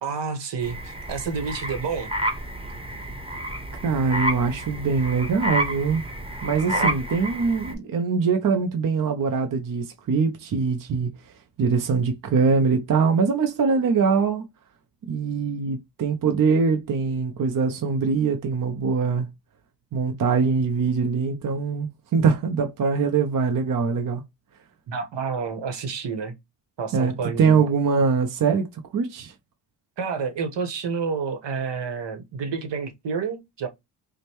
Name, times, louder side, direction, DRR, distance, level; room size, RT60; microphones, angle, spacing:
voice 1, 0.0-2.1 6.7-6.9 24.9-26.3 26.8-27.6 30.0-33.7, right 5 dB, 70° right, 1.2 m, -29 dB
sound 1, 0.6-7.7, equal, 15° right, 1.0 m, -30 dB
voice 2, 3.8-6.1 6.4-11.1 11.6-14.5 15.1-19.3 19.9-24.2 26.9-28.7 28.9-29.3, right 5 dB, 45° right, 0.7 m, -23 dB
5.0 x 2.2 x 2.9 m
cardioid pair, 105°, 44 cm